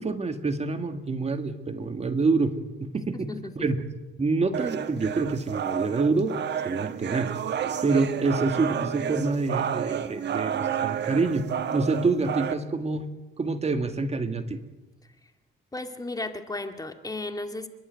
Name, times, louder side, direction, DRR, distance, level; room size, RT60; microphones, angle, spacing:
voice 1, 0.0-3.3 3.6-3.8 4.2-6.3 6.6-13.0 13.4-14.6, right 3 dB, 30° right, 7 dB, 2.0 m, -27 dB
voice 2, 2.9-3.7 15.7-17.7, left 2 dB, 20° left, 6 dB, 2.2 m, -35 dB
sound 1, 4.5-12.5, right 9 dB, 60° right, 1.4 m, -30 dB
30.0 x 12.0 x 9.3 m, 1.1 s
cardioid pair, 90°, 20 cm